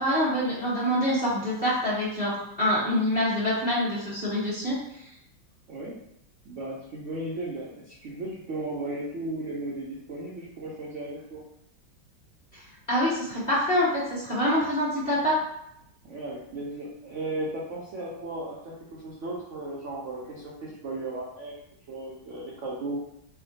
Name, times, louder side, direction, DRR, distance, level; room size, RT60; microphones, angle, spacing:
voice 1, 0.0-5.1 12.5-12.6 12.9-15.4, equal, 25° left, -9 dB, 1.2 m, -26 dB
voice 2, 6.4-11.4 16.0-21.5 21.9-23.0, right 2 dB, 75° right, -4 dB, 0.6 m, -35 dB
3.4 x 2.1 x 4.0 m, 0.77 s
omnidirectional pair, 2.0 m